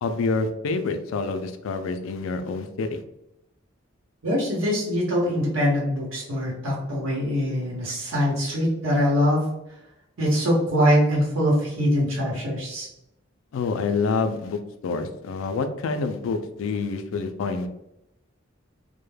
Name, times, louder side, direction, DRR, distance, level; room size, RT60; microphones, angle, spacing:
voice 1, 0.0-3.0 13.5-17.7, left 4 dB, 85° left, 8 dB, 0.3 m, -27 dB
voice 2, 4.2-9.5 10.2-12.9, equal, 85° right, -4 dB, 0.8 m, -23 dB
2.2 x 2.1 x 3.1 m, 0.85 s
head